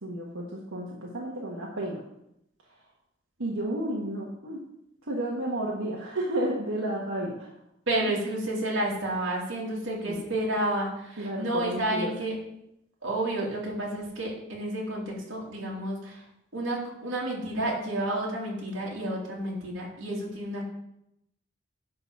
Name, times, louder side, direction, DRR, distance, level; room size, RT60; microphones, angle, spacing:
voice 1, 0.0-2.0 3.4-4.6 5.0-7.5 8.0-8.2 10.0-10.2 11.2-12.1, right 1 dB, 85° right, -3 dB, 1.5 m, -32 dB
voice 2, 7.9-12.3 13.0-16.2 16.5-20.6, right 1 dB, 65° right, -4 dB, 3.1 m, -30 dB
10.5 x 4.0 x 7.2 m, 0.81 s
head